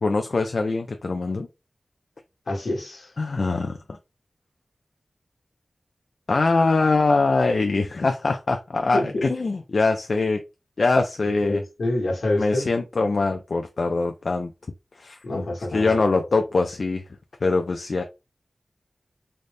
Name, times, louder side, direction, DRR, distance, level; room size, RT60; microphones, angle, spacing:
voice 1, 0.0-1.5 3.2-3.8 6.3-10.4 10.8-11.6 12.4-14.5 15.0-17.0 17.4-18.0, left 3 dB, 65° left, 0.4 m, -23 dB
voice 2, 2.5-3.1 8.9-9.3 11.4-12.7 15.2-16.0, left 2 dB, 80° left, 1.1 m, -26 dB
3.9 x 2.0 x 3.3 m
wide cardioid pair, 85°, 0 cm